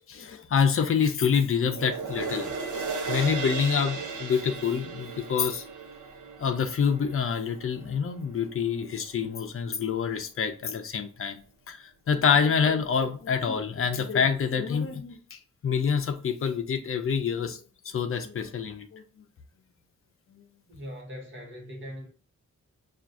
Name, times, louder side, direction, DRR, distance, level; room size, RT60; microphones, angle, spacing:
voice 1, 0.1-2.5 3.1-5.6 6.4-11.4 11.7-19.2 20.3-20.4, left 6 dB, 45° left, 0.6 m, -27 dB
sound 1, 1.7-8.2 8.7-8.8, right 4 dB, 80° right, 0.8 m, -36 dB
voice 2, 20.7-22.1, equal, 40° right, 1.4 m, -40 dB
5.8 x 2.5 x 2.5 m
wide cardioid pair, 155°, 30 cm